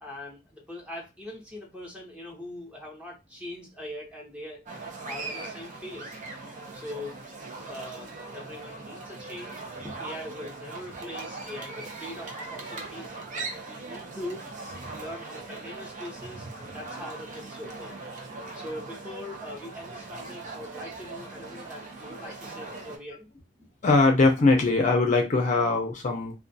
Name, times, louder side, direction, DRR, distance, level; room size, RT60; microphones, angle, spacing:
voice 1, 0.0-4.6 5.1-6.2 6.7-7.2 7.7-14.5 14.9-18.0 18.5-23.3, left 1 dB, 5° right, 0.8 m, -42 dB
sound 1, 4.7-23.0, right 3 dB, 45° right, 0.6 m, -40 dB
voice 2, 23.8-26.3, left 3 dB, 40° left, 0.5 m, -21 dB
2.3 x 2.3 x 2.6 m
head